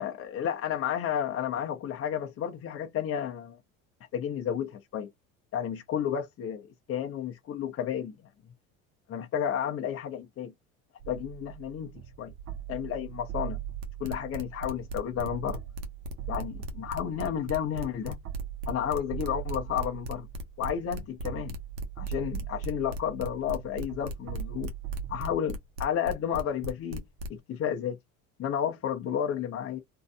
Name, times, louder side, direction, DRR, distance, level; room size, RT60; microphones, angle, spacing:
voice 1, 0.0-3.6 4.1-5.1 5.5-8.1 9.1-10.5 11.1-11.9 12.2-12.3 12.7-13.6 14.0-15.6 16.3-18.2 18.7-20.3 20.6-21.6 22.0-24.7 25.1-27.0 27.3-28.0 28.4-29.8, left 9 dB, 35° left, 0.7 m, -32 dB
sound 1, 11.0-25.4, right 11 dB, 40° right, 0.5 m, -41 dB
sound 2, 13.8-27.4, equal, 75° right, 1.0 m, -37 dB
2.6 x 2.3 x 2.2 m
hypercardioid pair, 70°, 40 cm